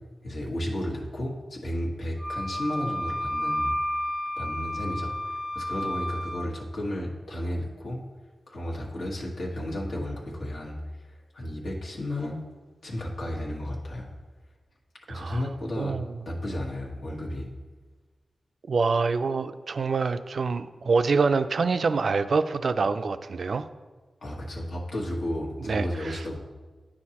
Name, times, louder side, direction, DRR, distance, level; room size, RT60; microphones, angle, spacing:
voice 1, 0.2-3.7 4.4-8.0 8.5-10.8 11.0-12.4 12.8-14.1 15.1-16.0 16.2-17.5 24.2-26.4, left 1 dB, 75° left, -3 dB, 1.3 m, -33 dB
Wind instrument woodwind instrument, 2.2-6.5, left 1 dB, 20° left, 0.6 m, -31 dB
voice 2, 15.1-15.4 15.8-16.1 18.7-23.7 25.7-26.2, right 4 dB, 60° right, 11 dB, 0.3 m, -26 dB
9.8 x 6.3 x 2.9 m, 1.3 s
wide cardioid pair, 110°, 0 cm